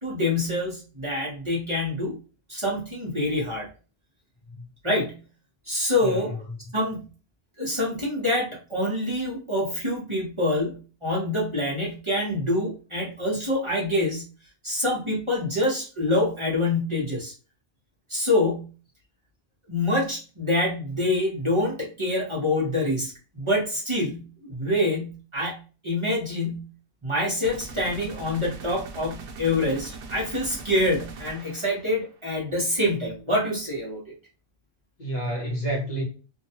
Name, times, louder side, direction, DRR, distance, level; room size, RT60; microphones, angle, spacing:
voice 1, 0.0-2.2 2.5-3.7 4.8-5.2 5.7-6.3 6.7-7.1 7.6-14.3 14.6-17.3 18.1-18.7 19.7-26.7 27.0-34.0, left 1 dB, 30° right, 0.8 m, -26 dB
voice 2, 6.0-6.6 35.0-36.0, right 1 dB, 45° left, 0.9 m, -30 dB
sound 1, 27.4-32.2, right 3 dB, 85° right, 0.9 m, -41 dB
2.6 x 2.2 x 2.8 m
omnidirectional pair, 1.1 m